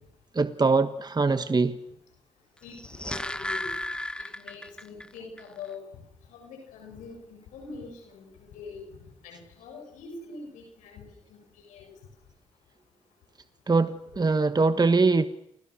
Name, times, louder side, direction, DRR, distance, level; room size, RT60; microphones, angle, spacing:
voice 1, 0.3-1.8 13.7-15.3, right 4 dB, 35° right, 11 dB, 1.5 m, -22 dB
voice 2, 2.6-3.7 4.2-5.9 6.3-8.9 9.2-11.0 11.3-11.4 11.7-11.9, left 4 dB, 85° left, 2 dB, 7.2 m, -44 dB
sound 1, 2.6-5.1 5.4-5.5, left 1 dB, 5° left, 1.2 m, -34 dB
29.5 x 27.5 x 6.5 m, 0.77 s
hypercardioid pair, 40°, 13 cm